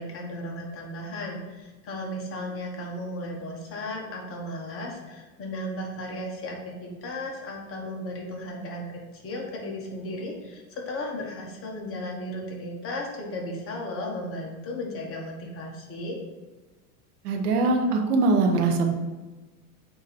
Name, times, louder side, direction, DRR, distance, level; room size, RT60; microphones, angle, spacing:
voice 1, 0.0-16.2, left 1 dB, 30° left, -1 dB, 1.3 m, -35 dB
voice 2, 17.2-18.9, right 3 dB, 90° right, 3 dB, 1.1 m, -22 dB
8.0 x 3.0 x 4.2 m, 1.2 s
supercardioid pair, 145°, 44 cm